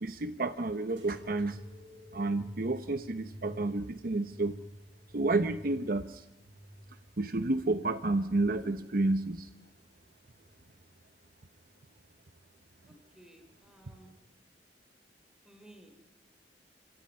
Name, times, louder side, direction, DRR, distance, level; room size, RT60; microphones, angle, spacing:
voice 1, 0.0-1.6 2.1-4.5 5.1-6.2 7.2-9.5, right 2 dB, 50° right, 10 dB, 0.8 m, -30 dB
sound 1, 1.0-8.2 8.7-9.5 10.2-10.8 11.7-11.8, equal, 85° right, 7.3 m, -50 dB
voice 2, 13.2-14.1 15.5-16.0, right 1 dB, 5° right, 4 dB, 4.1 m, -56 dB
27.0 x 23.5 x 5.6 m, 0.98 s
head